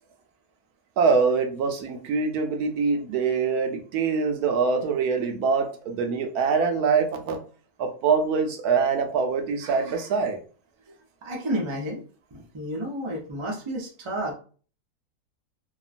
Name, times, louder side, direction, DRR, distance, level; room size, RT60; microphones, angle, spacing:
voice 1, 1.0-7.4 7.8-10.4, right 5 dB, 80° right, 5 dB, 1.1 m, -24 dB
voice 2, 11.2-12.0 12.3-14.3, right 1 dB, 50° right, -1 dB, 0.3 m, -31 dB
2.8 x 2.3 x 2.4 m, 0.40 s
omnidirectional pair, 1.6 m